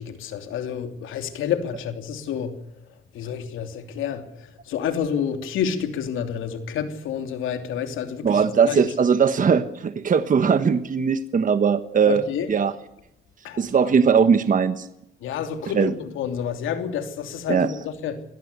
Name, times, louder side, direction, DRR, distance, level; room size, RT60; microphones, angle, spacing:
voice 1, 0.0-2.6 3.1-8.9 12.1-12.5 13.4-13.9 15.2-18.2, left 8 dB, 85° left, 3.0 m, -29 dB
voice 2, 8.2-12.2 12.5-12.7 13.6-14.9 15.7-15.9 17.5-17.7, right 6 dB, 40° right, 1.3 m, -19 dB
25.5 x 17.5 x 6.9 m
cardioid pair, 90°, 20 cm